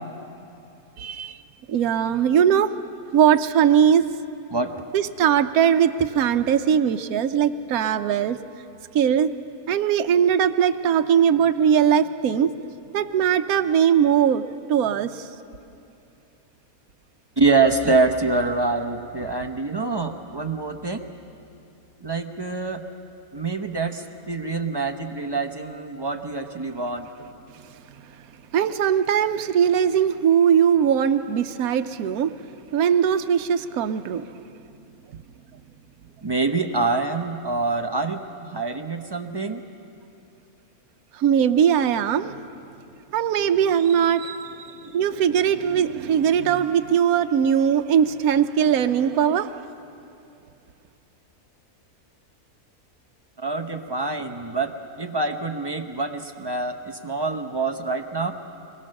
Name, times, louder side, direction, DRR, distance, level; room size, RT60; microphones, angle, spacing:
voice 1, 1.0-1.4 1.7-2.7 3.1-4.0 4.9-8.4 8.9-9.3 9.7-12.5 12.9-14.4 14.7-15.3 28.5-32.3 32.7-34.3 41.1-42.4 43.1-49.6, right 8 dB, 75° right, 8 dB, 1.2 m, -20 dB
voice 2, 17.4-21.0 22.0-22.8 23.3-27.1 36.2-39.6 53.4-58.3, right 3 dB, 20° right, 5 dB, 0.8 m, -25 dB
23.5 x 21.0 x 6.5 m, 2.7 s
omnidirectional pair, 1.6 m